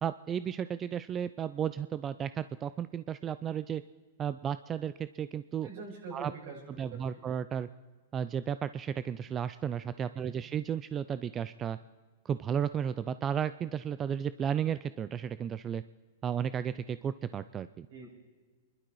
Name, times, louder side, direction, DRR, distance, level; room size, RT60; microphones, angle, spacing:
voice 1, 0.0-3.8 4.2-5.7 6.1-6.3 6.8-7.7 8.1-11.8 12.2-15.8 16.2-17.9, right 8 dB, 25° right, 14 dB, 0.4 m, -33 dB
voice 2, 5.6-6.6 6.9-7.3 10.1-10.3 17.9-18.1, right 4 dB, 65° right, -3 dB, 7.0 m, -45 dB
25.5 x 12.0 x 4.7 m, 1.4 s
hypercardioid pair, 135°, 0 cm